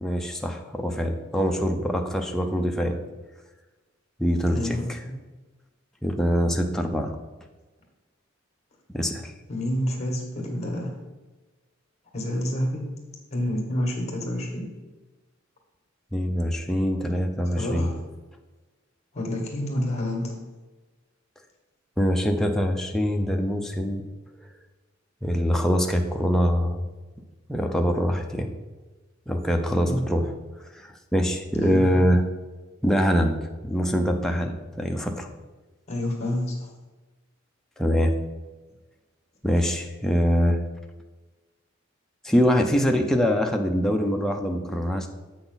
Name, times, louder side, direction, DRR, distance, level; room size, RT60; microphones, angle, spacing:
voice 1, 0.0-3.0 4.2-5.0 6.0-7.2 8.9-9.3 16.1-17.9 22.0-24.0 25.2-26.8 27.5-28.5 29.3-30.3 30.7-32.2 32.8-33.4 33.6-35.3 37.8-38.1 39.4-40.6 42.2-45.1, equal, ahead, 2 dB, 0.6 m, -24 dB
voice 2, 4.5-5.1 9.5-10.9 12.1-12.8 13.3-14.6 17.5-17.9 19.1-20.4 29.8-30.1 31.6-32.0 35.9-36.7, left 1 dB, 35° left, 0 dB, 1.9 m, -28 dB
7.8 x 6.0 x 4.0 m, 1.2 s
head